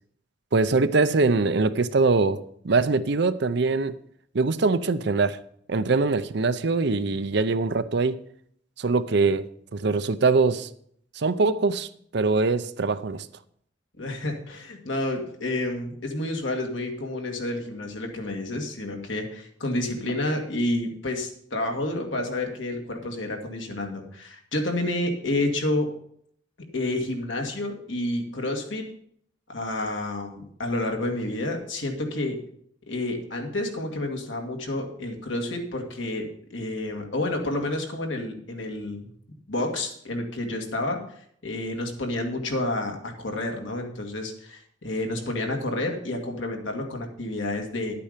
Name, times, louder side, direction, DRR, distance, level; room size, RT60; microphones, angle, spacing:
voice 1, 0.5-4.0 4.3-5.4 5.7-8.2 8.8-10.7 11.2-11.9 12.1-13.3, right 3 dB, 60° right, 0.6 m, -23 dB
voice 2, 14.0-25.9 26.7-28.9 29.5-32.4 32.9-39.0 39.3-41.0 41.4-47.9, left 1 dB, 75° left, 2.1 m, -29 dB
11.0 x 8.4 x 5.1 m
head